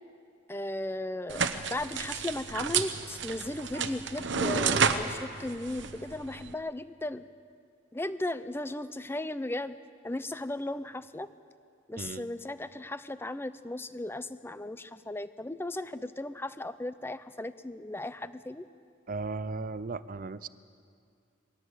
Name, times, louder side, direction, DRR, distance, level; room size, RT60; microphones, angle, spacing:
voice 1, 0.5-1.4 1.7-7.2 7.9-9.8 10.0-11.3 11.9-18.7, left 1 dB, 10° left, 13 dB, 0.5 m, -36 dB
sound 1, 1.3-6.5, right 6 dB, 60° right, 1.0 m, -31 dB
voice 2, 12.0-12.3 19.1-20.5, right 3 dB, 40° right, 16 dB, 0.6 m, -36 dB
22.0 x 17.5 x 8.0 m, 2.3 s
head